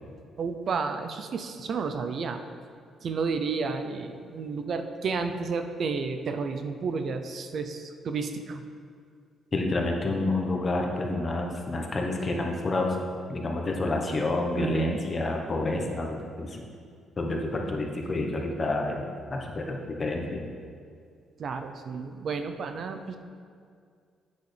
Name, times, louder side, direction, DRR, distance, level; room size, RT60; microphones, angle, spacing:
voice 1, 0.4-2.4 3.0-8.6 14.6-15.0 21.4-23.2, right 5 dB, 55° right, 7 dB, 0.5 m, -31 dB
voice 2, 9.5-12.9 13.3-16.6 17.2-20.4, left 2 dB, 35° left, 1 dB, 1.0 m, -29 dB
8.3 x 6.3 x 3.3 m, 2.2 s
cardioid pair, 90°, 0 cm